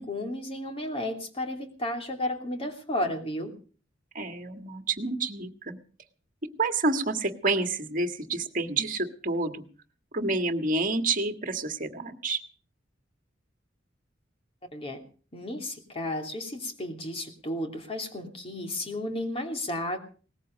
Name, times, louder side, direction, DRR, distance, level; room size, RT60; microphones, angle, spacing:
voice 1, 0.0-3.5 14.7-15.0 15.3-20.0, left 1 dB, 30° left, 4 dB, 3.0 m, -33 dB
voice 2, 4.2-5.8 6.6-9.6 10.1-12.4, right 3 dB, 45° right, 7 dB, 1.7 m, -29 dB
19.0 x 14.5 x 5.2 m, 0.40 s
head